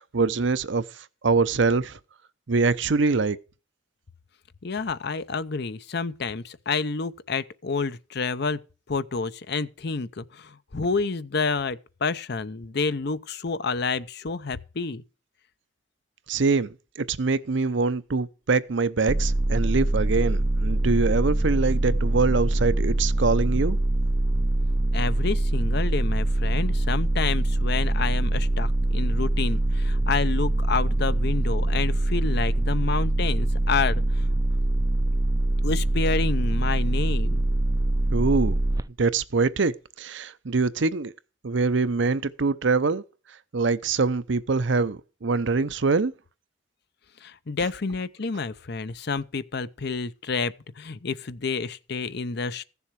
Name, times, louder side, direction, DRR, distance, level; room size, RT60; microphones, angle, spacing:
voice 1, 0.0-2.0 2.5-3.4 16.3-23.8 38.1-38.6 39.0-41.1 41.4-43.0 43.5-46.1, right 4 dB, 65° right, 0.7 m, -24 dB
voice 2, 4.6-8.6 8.9-15.0 24.9-34.3 35.6-37.5 47.2-52.6, left 4 dB, 55° left, 0.7 m, -29 dB
sound 1, 19.1-38.8, right 1 dB, 20° right, 0.5 m, -24 dB
15.5 x 7.1 x 4.7 m
head